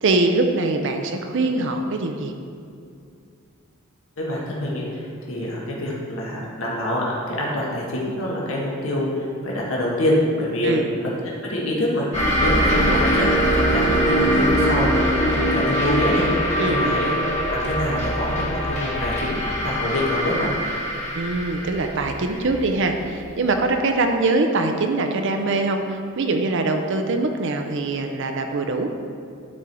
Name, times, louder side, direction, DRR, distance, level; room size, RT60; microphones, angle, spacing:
voice 1, 0.0-2.3 10.6-10.9 16.6-17.0 21.1-28.9, right 2 dB, 60° right, 4 dB, 0.6 m, -23 dB
voice 2, 4.2-10.9 11.4-12.0 12.4-14.9 15.2-16.3 16.6-17.2 17.5-20.6, left 1 dB, 70° left, -4 dB, 1.5 m, -25 dB
sound 1, 12.1-23.3, equal, 35° left, 1.6 m, -22 dB
11.5 x 4.5 x 4.7 m, 2.4 s
head